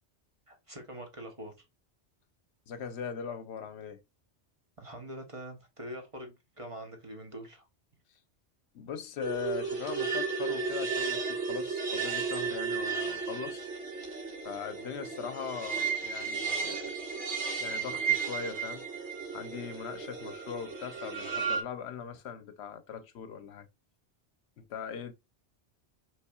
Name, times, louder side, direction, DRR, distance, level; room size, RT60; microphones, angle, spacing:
voice 1, 0.5-1.7 4.8-7.7, equal, 30° right, 0.9 m, -44 dB
voice 2, 2.7-4.0 8.7-13.7 14.4-17.0 17.6-18.8 19.3-23.7 24.6-25.1, left 7 dB, 70° left, 0.9 m, -40 dB
sound 1, 9.2-21.6, right 5 dB, 75° right, 1.9 m, -34 dB
5.5 x 3.5 x 2.3 m
omnidirectional pair, 1.2 m